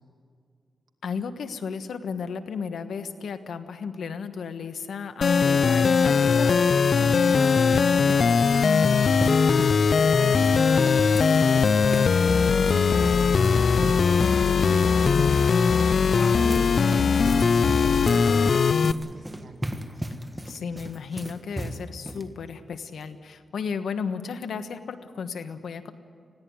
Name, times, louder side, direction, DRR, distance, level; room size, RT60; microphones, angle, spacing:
voice 1, 1.0-6.7 15.1-16.5 20.5-25.9, left 6 dB, 80° left, 9 dB, 1.3 m, -34 dB
sound 1, 5.2-18.9, left 5 dB, 55° left, 0.5 m, -20 dB
sound 2, 6.6-22.3, right 1 dB, 10° right, 1.5 m, -36 dB
voice 2, 6.9-9.8 10.2-15.5 16.1-19.6, right 3 dB, 55° right, 4 dB, 2.3 m, -40 dB
20.5 x 16.5 x 9.7 m, 2.3 s
cardioid pair, 95°, 0 cm